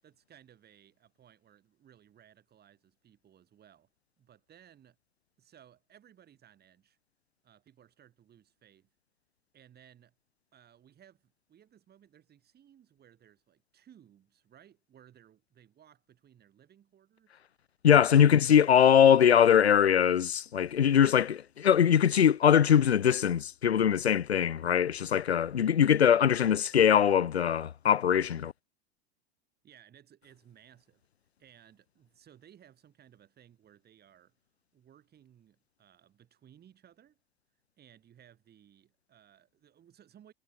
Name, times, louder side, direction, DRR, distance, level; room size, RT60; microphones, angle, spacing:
voice 1, 0.0-3.9 4.2-5.0 5.4-7.0 7.4-8.9 9.5-10.1 10.5-17.4 18.0-18.9 25.6-25.7 29.6-31.0 31.4-34.4 34.7-37.2 37.8-40.3, right 10 dB, 30° right, 7.0 m, -60 dB
voice 2, 17.8-28.5, left 9 dB, 85° left, 0.6 m, -22 dB
figure-of-eight pair, 80°, 31 cm